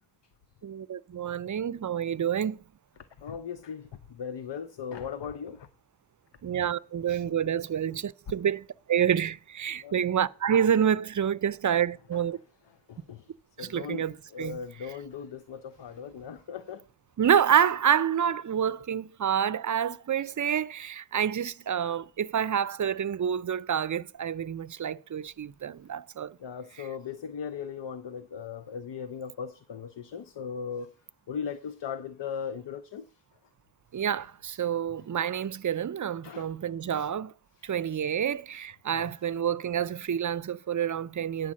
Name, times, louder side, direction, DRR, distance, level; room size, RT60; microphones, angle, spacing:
voice 1, 0.6-2.6 6.4-12.4 13.6-14.6 17.2-26.4 26.8-26.9 33.9-37.3 37.6-41.5, right 8 dB, 45° right, 0.5 m, -28 dB
voice 2, 3.2-5.7 9.8-9.9 12.1-12.2 12.9-13.3 13.6-16.8 26.4-30.9 31.3-33.1 36.2-36.5 37.6-37.7 38.9-39.1, left 7 dB, 80° left, 0.7 m, -38 dB
9.8 x 4.6 x 7.4 m
wide cardioid pair, 90°, 42 cm